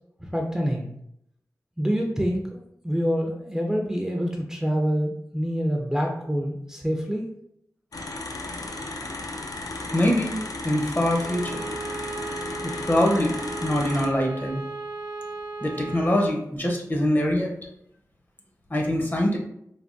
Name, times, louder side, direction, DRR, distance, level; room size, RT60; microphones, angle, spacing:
voice 1, 0.2-0.9 1.8-7.3, equal, 5° right, 0 dB, 0.4 m, -26 dB
sound 1, 7.9-14.1, left 2 dB, 65° left, 0.4 m, -35 dB
voice 2, 9.9-11.7 12.6-14.6 15.6-17.5 18.7-19.4, left 1 dB, 30° left, 0 dB, 0.7 m, -24 dB
Bowed string instrument, 11.2-16.4, right 3 dB, 90° right, 0.4 m, -36 dB
3.4 x 2.2 x 2.5 m, 0.76 s
wide cardioid pair, 65°, 6 cm